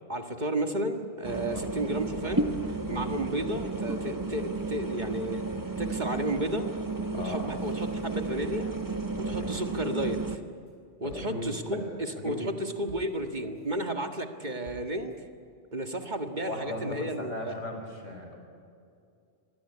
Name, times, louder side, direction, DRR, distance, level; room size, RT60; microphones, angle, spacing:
voice 1, 0.1-5.5 5.8-6.7 7.2-8.7 9.2-10.4 11.0-15.1 15.7-17.6, right 1 dB, 40° right, 5 dB, 1.8 m, -32 dB
sound 1, 1.2-10.4, right 3 dB, 15° right, 1.2 m, -33 dB
sound 2, 1.3-1.4 1.6-1.7 2.0-3.6 4.0-9.0 9.3-10.0 10.4-10.7 11.1-11.6 12.0-12.5 12.9-13.8 14.2-15.2, equal, 65° right, 7.0 m, -55 dB
voice 2, 7.1-7.6 9.3-9.5 11.0-11.5 12.2-12.4 16.5-18.4, left 1 dB, 90° left, 3 dB, 5.5 m, -37 dB
26.5 x 21.5 x 9.8 m, 2.4 s
omnidirectional pair, 1.2 m